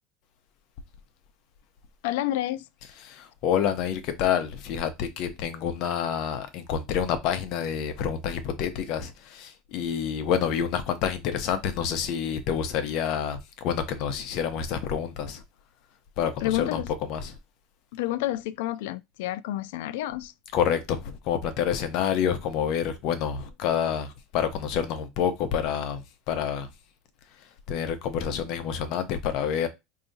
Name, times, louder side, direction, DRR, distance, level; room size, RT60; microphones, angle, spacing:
voice 1, 2.0-2.7 16.4-16.9 17.9-20.3, left 14 dB, 80° left, 0.3 m, -29 dB
voice 2, 3.0-15.4 16.2-17.4 20.5-26.7 27.3-29.7, left 8 dB, 50° left, 0.7 m, -28 dB
4.6 x 2.8 x 2.6 m
cardioid pair, 165°, 0 cm